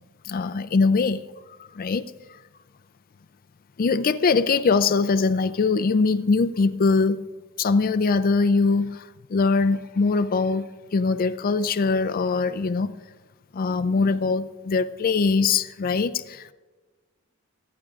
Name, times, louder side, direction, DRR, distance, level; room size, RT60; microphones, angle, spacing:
voice 1, 0.2-1.2 1.7-2.4 3.8-7.2 7.6-10.6 10.9-12.9 13.5-16.5, left 4 dB, 45° left, 13 dB, 0.4 m, -22 dB
24.0 x 9.9 x 2.4 m, 1.3 s
head